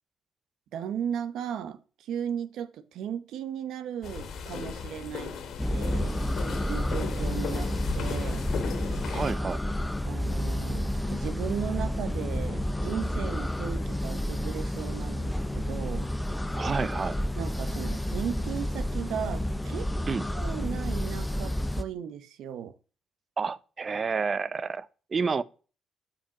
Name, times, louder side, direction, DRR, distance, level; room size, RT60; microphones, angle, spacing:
voice 1, 0.7-5.4 5.7-6.2 6.7-8.4 8.9-9.1 10.0-16.1 17.3-19.9 20.3-22.7, right 9 dB, 80° right, 0.9 m, -36 dB
sound 1, 4.0-9.3, left 6 dB, 65° left, 1.9 m, -36 dB
sound 2, 5.6-21.8, left 1 dB, 10° left, 0.7 m, -30 dB
voice 2, 9.1-9.6 16.6-17.2 20.1-20.3 23.4-25.4, right 5 dB, 40° right, 0.6 m, -30 dB
8.8 x 5.1 x 7.2 m
cardioid pair, 90°, 0 cm